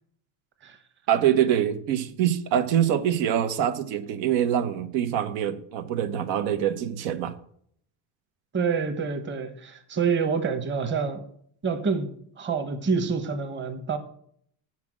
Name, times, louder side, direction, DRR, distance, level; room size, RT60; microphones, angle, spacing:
voice 1, 1.1-7.3, right 10 dB, 80° right, 1.1 m, -24 dB
voice 2, 8.5-11.2 11.6-12.1 12.4-14.0, right 5 dB, 25° right, 1.1 m, -27 dB
7.5 x 5.9 x 7.5 m
cardioid pair, 155°, 45 cm